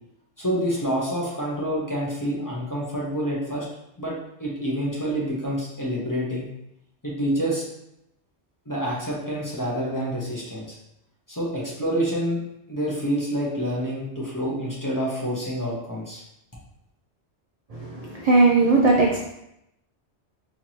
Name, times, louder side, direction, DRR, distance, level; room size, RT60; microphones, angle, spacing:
voice 1, 0.4-3.7 4.0-4.1 4.4-6.5 7.0-7.6 8.7-10.7 11.3-12.4 12.7-16.2, equal, 20° left, -5 dB, 0.8 m, -27 dB
voice 2, 17.7-19.3, right 3 dB, 55° right, -1 dB, 0.4 m, -19 dB
4.5 x 2.9 x 2.8 m, 0.82 s
omnidirectional pair, 1.2 m